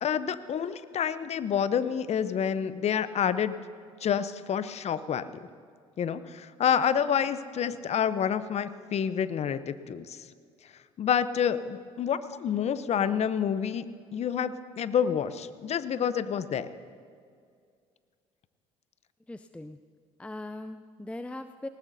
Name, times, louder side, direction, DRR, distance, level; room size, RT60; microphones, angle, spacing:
voice 1, 0.0-3.5 4.0-5.3 6.0-10.2 11.0-13.9 14.1-16.7, left 8 dB, 45° left, 14 dB, 0.8 m, -28 dB
voice 2, 19.3-19.8 20.2-21.7, left 1 dB, 10° left, 10 dB, 0.5 m, -40 dB
19.0 x 18.5 x 2.7 m, 2.1 s
hypercardioid pair, 55°, 15 cm